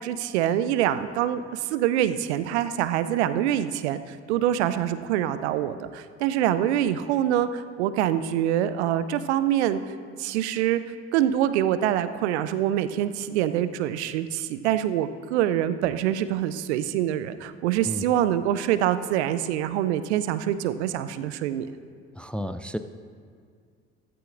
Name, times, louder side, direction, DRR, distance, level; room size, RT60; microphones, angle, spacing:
voice 1, 0.0-9.8 10.2-10.8 11.1-21.7, right 11 dB, 75° right, 13 dB, 0.6 m, -25 dB
voice 2, 22.2-22.8, equal, 5° left, 10 dB, 0.4 m, -31 dB
14.5 x 14.0 x 2.6 m, 2.1 s
hypercardioid pair, 60°, 34 cm